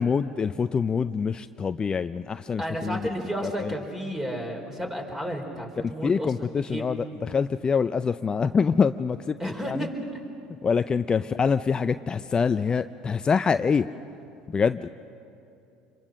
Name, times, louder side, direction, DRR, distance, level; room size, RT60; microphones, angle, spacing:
voice 1, 0.0-3.1 3.4-3.8 5.8-9.4 9.6-9.9 10.6-13.9 14.5-14.9, left 5 dB, 30° left, 11 dB, 0.5 m, -25 dB
voice 2, 2.6-6.3 6.7-6.8 9.4-9.9, equal, 15° right, 2 dB, 4.4 m, -32 dB
27.0 x 23.0 x 6.5 m, 2.6 s
supercardioid pair, 85°, 3 cm